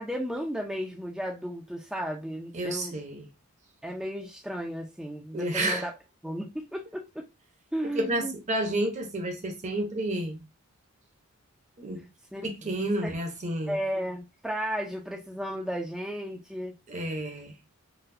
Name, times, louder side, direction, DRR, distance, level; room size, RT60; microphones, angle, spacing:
voice 1, 0.0-2.9 3.8-5.9 6.2-7.3 7.7-8.3 12.3-12.5 13.0-13.1 13.7-16.7, equal, ahead, 0.4 m, -34 dB
voice 2, 2.5-3.3 5.3-5.9 7.9-10.4 11.8-12.1 12.4-13.8 16.9-17.6, right 1 dB, 35° right, 0.7 m, -30 dB
3.9 x 2.2 x 2.6 m
head